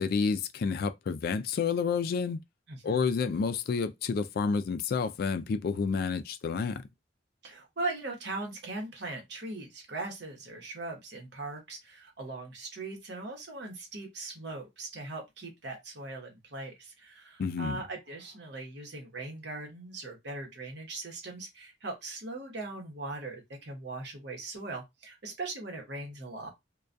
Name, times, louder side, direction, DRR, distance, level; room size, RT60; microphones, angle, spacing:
voice 1, 0.0-2.4 2.8-6.8 17.4-17.8, left 5 dB, 55° left, 0.3 m, -29 dB
voice 2, 2.7-3.0 7.4-26.5, right 2 dB, 65° right, 1.0 m, -40 dB
2.3 x 2.2 x 2.5 m
head